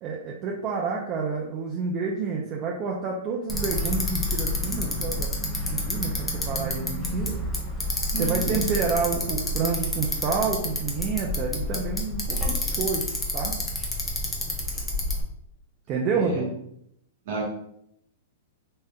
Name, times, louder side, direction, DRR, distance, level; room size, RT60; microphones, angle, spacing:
voice 1, 0.0-5.3 5.7-7.4 8.2-13.1 13.3-13.6 15.9-16.5, right 5 dB, 35° right, -1 dB, 0.4 m, -29 dB
Bicycle, 3.5-15.2, left 1 dB, 10° left, 0.6 m, -29 dB
voice 2, 8.1-8.6 16.1-16.4 17.2-17.4, right 3 dB, 60° right, -4 dB, 1.0 m, -31 dB
3.5 x 2.6 x 2.2 m, 0.74 s
hypercardioid pair, 135°, 0 cm